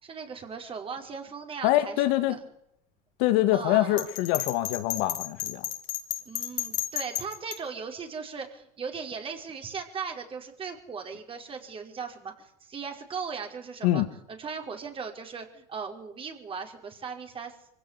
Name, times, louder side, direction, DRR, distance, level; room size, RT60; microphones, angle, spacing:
voice 1, 0.0-2.0 2.3-2.4 3.5-4.1 6.3-17.6, right 5 dB, 25° right, 4 dB, 5.3 m, -38 dB
voice 2, 1.6-2.4 3.2-5.6 13.8-14.1, left 15 dB, 60° left, 9 dB, 2.4 m, -24 dB
Bell, 4.0-7.6, left 13 dB, 40° left, 4.2 m, -32 dB
24.5 x 16.5 x 8.5 m, 0.76 s
supercardioid pair, 115°, 20 cm